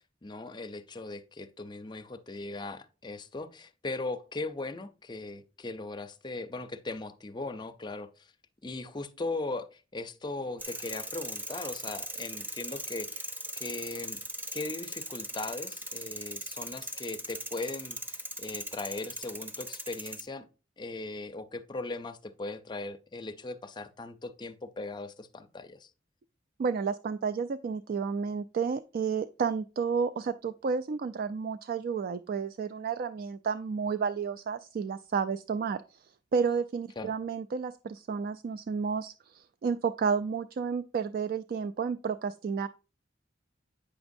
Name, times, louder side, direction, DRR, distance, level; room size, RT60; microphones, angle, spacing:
voice 1, 0.2-8.3 8.6-13.3 13.6-14.2 14.5-20.5 20.8-25.9 37.0-37.1, left 2 dB, 25° left, 0.5 m, -39 dB
sound 1, 10.6-20.2, right 1 dB, 10° right, 0.8 m, -39 dB
voice 2, 26.6-36.0 36.3-42.7, right 6 dB, 50° right, 0.3 m, -31 dB
8.7 x 6.0 x 2.6 m
head